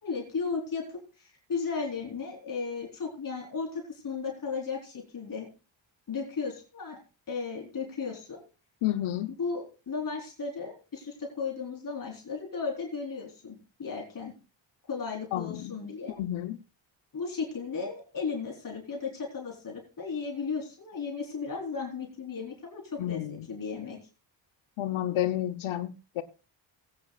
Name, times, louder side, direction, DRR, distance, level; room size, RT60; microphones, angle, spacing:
voice 1, 0.0-5.5 6.1-7.0 7.3-8.4 9.4-14.3 14.9-16.2 17.1-24.0, left 5 dB, 45° left, 3.5 m, -35 dB
voice 2, 8.8-9.3 15.3-15.7 16.2-16.6 23.0-23.5 24.8-26.2, left 13 dB, 80° left, 0.9 m, -30 dB
21.0 x 8.4 x 2.4 m
cardioid pair, 115°, 47 cm